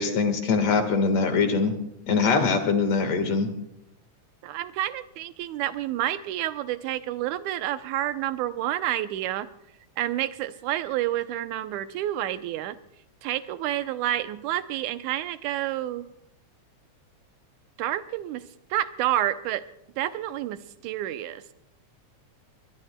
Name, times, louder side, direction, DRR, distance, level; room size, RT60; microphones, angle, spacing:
voice 1, 0.0-1.7 2.1-3.5, left 4 dB, 60° left, 6 dB, 2.6 m, -23 dB
voice 2, 4.4-9.5 10.0-12.8 13.2-16.1 17.8-18.4 18.7-19.6 20.0-21.4, right 13 dB, 90° right, 11 dB, 2.1 m, -29 dB
23.0 x 21.0 x 2.2 m, 0.80 s
omnidirectional pair, 3.4 m